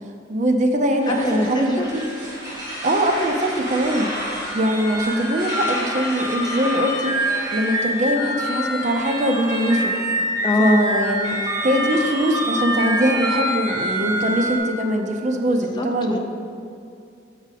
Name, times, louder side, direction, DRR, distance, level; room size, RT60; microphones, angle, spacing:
voice 1, 0.3-2.0 2.8-4.1 4.5-9.9 10.6-16.2, equal, 40° right, 3 dB, 0.5 m, -22 dB
sound 1, 1.0-14.6, equal, 20° right, 1.5 m, -26 dB
voice 2, 1.1-1.9 10.4-10.8 15.5-16.2, left 1 dB, 20° left, 3 dB, 0.4 m, -23 dB
7.2 x 5.0 x 4.1 m, 2.5 s
head